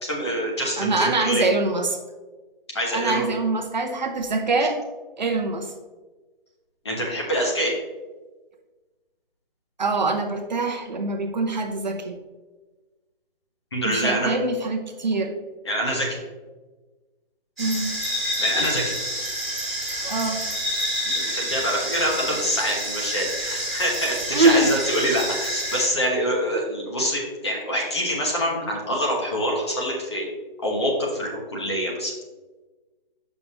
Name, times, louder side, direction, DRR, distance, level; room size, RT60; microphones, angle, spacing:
voice 1, 0.0-1.4 2.7-3.3 6.8-7.7 13.7-14.3 15.6-16.2 18.4-19.0 21.1-30.3 30.6-32.1, equal, 30° left, -2 dB, 1.1 m, -25 dB
voice 2, 0.8-1.9 2.9-4.8 5.2-5.7 9.8-12.2 13.8-15.4 17.6-17.9 20.0-20.4 24.3-24.7, right 3 dB, 50° right, 3 dB, 0.7 m, -24 dB
sound 1, 17.6-25.9, equal, ahead, 0.9 m, -28 dB
6.9 x 5.6 x 2.9 m, 1.2 s
hypercardioid pair, 175°, 29 cm